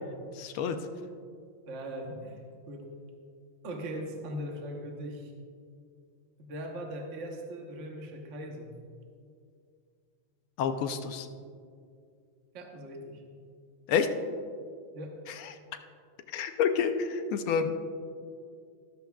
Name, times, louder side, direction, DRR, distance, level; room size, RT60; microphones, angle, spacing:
voice 1, 0.4-0.8 10.6-11.3 13.9-14.1 15.3-15.5 16.3-17.7, left 7 dB, 85° left, 7 dB, 1.5 m, -29 dB
voice 2, 1.7-2.4 2.7-2.8 3.6-5.3 6.4-8.7 12.5-13.2 14.9-15.1, equal, 45° right, 1 dB, 1.1 m, -39 dB
13.5 x 12.5 x 2.3 m, 2.3 s
omnidirectional pair, 2.3 m